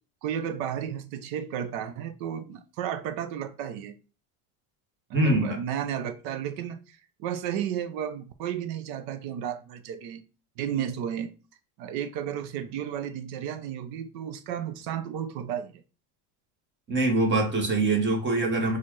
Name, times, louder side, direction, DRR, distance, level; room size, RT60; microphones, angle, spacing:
voice 1, 0.2-3.9 5.1-10.2 10.6-11.3 11.8-15.7, right 9 dB, 55° right, 0.6 m, -33 dB
voice 2, 5.1-5.6 16.9-18.8, right 2 dB, 25° right, 1.2 m, -24 dB
4.1 x 2.5 x 3.1 m
supercardioid pair, 130°, 45 cm